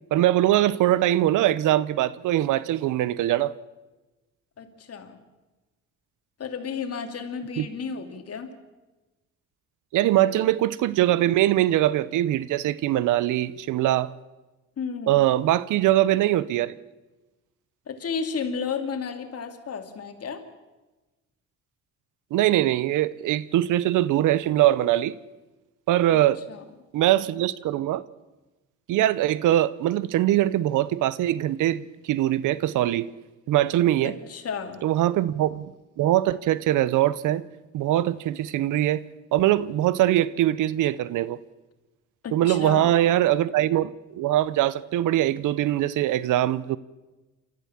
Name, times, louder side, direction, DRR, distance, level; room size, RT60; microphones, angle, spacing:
voice 1, 0.1-3.5 7.6-7.7 9.9-14.1 15.1-16.8 22.3-25.1 25.9-26.4 26.9-28.0 28.9-33.1 33.5-34.1 34.8-35.7 36.0-37.4 37.7-39.0 39.3-41.4 42.3-46.8, right 13 dB, 85° right, 0.8 m, -22 dB
voice 2, 4.6-5.2 6.4-8.5 14.8-15.2 17.9-20.5 26.1-26.2 26.5-26.6 34.0-34.8 42.2-42.9, left 6 dB, 55° left, 2.8 m, -33 dB
28.0 x 13.5 x 7.4 m
cardioid pair, 90°, 30 cm